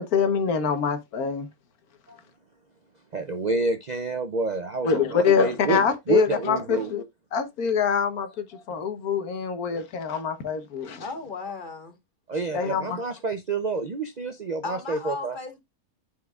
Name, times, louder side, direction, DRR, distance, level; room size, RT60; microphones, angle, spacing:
voice 1, 0.0-1.5 4.8-7.0 7.3-11.0 12.5-13.0, left 6 dB, 85° left, 1.5 m, -25 dB
voice 2, 3.1-6.9 12.3-15.4, right 4 dB, 50° right, 0.5 m, -28 dB
voice 3, 11.0-12.0 14.6-15.6, left 4 dB, 35° left, 1.5 m, -35 dB
13.0 x 4.7 x 2.3 m
omnidirectional pair, 1.5 m